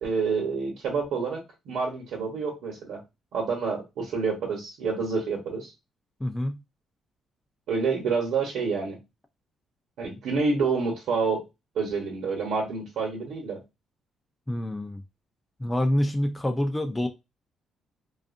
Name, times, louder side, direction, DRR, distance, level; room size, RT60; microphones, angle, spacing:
voice 1, 0.0-3.0 3.3-5.7 7.7-9.0 10.0-11.4 11.7-13.6, right 4 dB, 80° right, 0.9 m, -28 dB
voice 2, 6.2-6.6 14.5-15.0 15.6-17.1, left 1 dB, 10° left, 0.4 m, -26 dB
2.6 x 2.4 x 2.4 m
cardioid pair, 90°, 0 cm